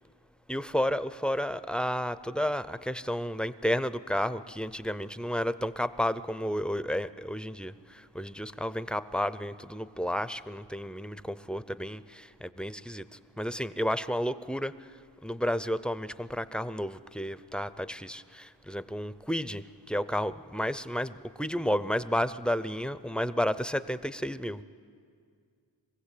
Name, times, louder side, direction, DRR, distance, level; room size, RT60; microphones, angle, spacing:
voice 1, 0.5-13.0 13.4-14.7 15.2-24.6, equal, ahead, 14 dB, 0.5 m, -32 dB
23.5 x 16.0 x 8.4 m, 2.2 s
wide cardioid pair, 105°, 42 cm